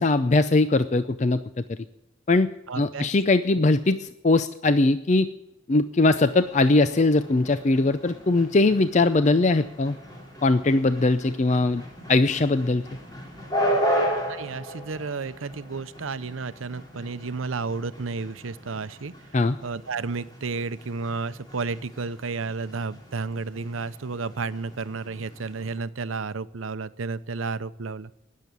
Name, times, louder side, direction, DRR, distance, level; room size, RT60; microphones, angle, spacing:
voice 1, 0.0-1.8 2.3-2.5 2.8-5.3 5.7-10.0 10.4-11.8 12.1-12.8 19.3-19.6, left 2 dB, 35° left, 11 dB, 0.5 m, -21 dB
voice 2, 2.7-3.1 14.3-19.1 19.6-28.1, right 4 dB, 80° right, 15 dB, 0.7 m, -32 dB
sound 1, 6.1-25.8, equal, 20° left, 3.3 m, -35 dB
20.0 x 7.5 x 8.2 m, 0.91 s
head